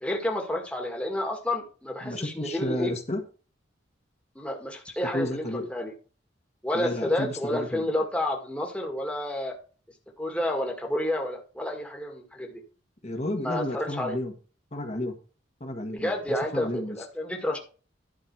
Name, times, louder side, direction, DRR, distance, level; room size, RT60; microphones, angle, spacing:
voice 1, 0.0-2.9 4.4-5.9 6.6-9.5 10.2-12.6 13.4-14.2 15.9-17.6, left 1 dB, 5° left, 1 dB, 1.9 m, -30 dB
voice 2, 2.0-3.2 5.1-5.7 6.7-7.8 13.0-14.3 14.7-15.1 15.6-17.0, left 1 dB, 35° left, 4 dB, 1.7 m, -32 dB
11.5 x 5.5 x 4.7 m, 0.36 s
head